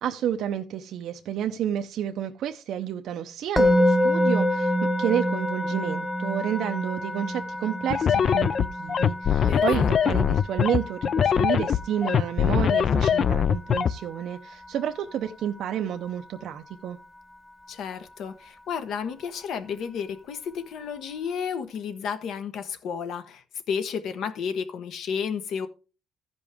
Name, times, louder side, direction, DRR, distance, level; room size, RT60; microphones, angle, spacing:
voice 1, 0.0-4.7 5.0-17.0, right 10 dB, 75° right, 0.6 m, -30 dB
Musical instrument, 3.6-14.7, left 1 dB, 10° left, 1.1 m, -27 dB
sound 1, 7.9-13.9, left 8 dB, 45° left, 0.4 m, -22 dB
voice 2, 9.5-10.2 17.7-25.7, left 7 dB, 70° left, 1.1 m, -32 dB
15.0 x 5.2 x 3.5 m
cardioid pair, 120°, 0 cm